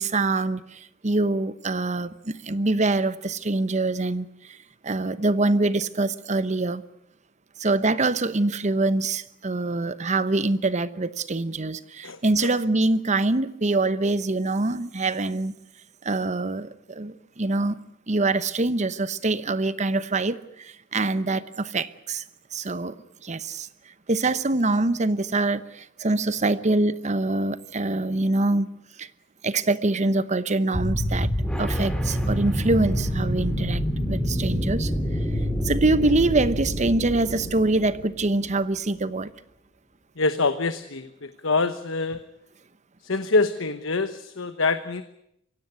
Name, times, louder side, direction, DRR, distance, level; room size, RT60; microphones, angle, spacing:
voice 1, 0.0-4.6 4.8-6.8 7.6-15.5 16.0-17.8 18.1-22.2 22.5-23.0 23.2-23.7 24.1-28.7 29.0-29.1 29.4-31.3 31.6-33.8 34.1-34.9 35.6-39.3, right 2 dB, 35° right, 14 dB, 1.0 m, -24 dB
voice 2, 12.0-12.5 40.2-42.2 43.0-45.0, left 3 dB, 80° left, 10 dB, 1.1 m, -25 dB
sound 1, 30.7-38.5, equal, 5° left, 3.1 m, -27 dB
24.0 x 16.5 x 9.6 m, 0.78 s
head